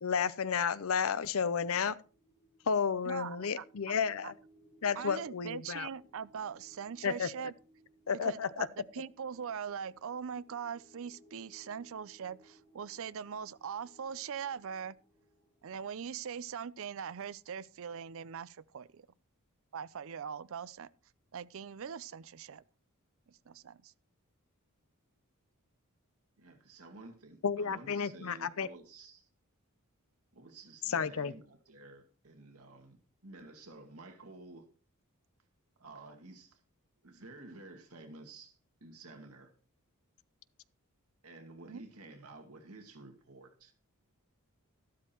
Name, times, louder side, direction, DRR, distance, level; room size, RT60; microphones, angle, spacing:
voice 1, 0.0-2.0 2.7-4.3 4.8-5.9 7.0-7.3 8.1-8.7 27.4-28.7 30.9-31.3, left 6 dB, 65° left, 0.6 m, -32 dB
sound 1, 1.8-16.7, right 1 dB, 25° left, 6.2 m, -64 dB
voice 2, 3.0-3.6 4.2-4.3 4.9-7.5 8.1-15.0 15.6-19.1 19.7-20.9 21.3-22.6 23.3-23.9 41.6-41.8, right 7 dB, 65° right, 0.5 m, -41 dB
voice 3, 26.4-29.3 30.3-34.7 35.8-36.6 37.0-39.5 41.2-43.7, right 2 dB, 85° right, 2.1 m, -52 dB
13.0 x 12.5 x 3.0 m
head